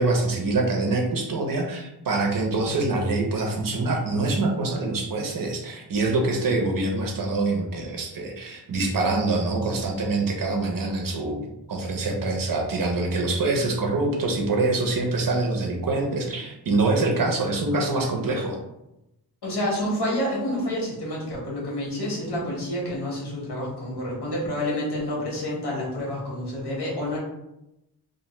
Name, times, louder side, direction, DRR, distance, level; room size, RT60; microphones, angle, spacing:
voice 1, 0.0-18.6, right 2 dB, 55° right, 1 dB, 0.7 m, -25 dB
voice 2, 19.4-27.2, left 1 dB, 80° left, -4 dB, 1.2 m, -28 dB
2.5 x 2.2 x 2.9 m, 0.88 s
wide cardioid pair, 140°, 40 cm